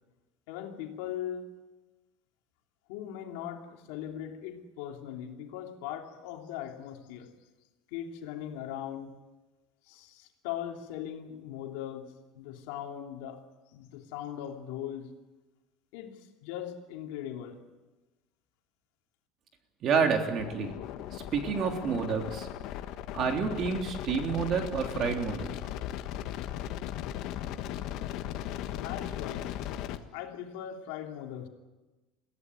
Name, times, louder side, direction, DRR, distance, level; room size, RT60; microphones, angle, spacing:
voice 1, 0.5-1.6 2.9-7.3 7.9-9.1 9.9-13.4 13.7-15.1 15.9-17.6 28.8-29.6 30.1-31.5, left 10 dB, 80° left, 3.0 m, -39 dB
voice 2, 19.8-20.7 21.1-22.5 23.1-25.5, right 5 dB, 40° right, 3.5 m, -29 dB
sound 1, 20.4-30.0, left 12 dB, 60° left, 1.5 m, -37 dB
23.0 x 15.5 x 9.5 m
cardioid pair, 140°, 0 cm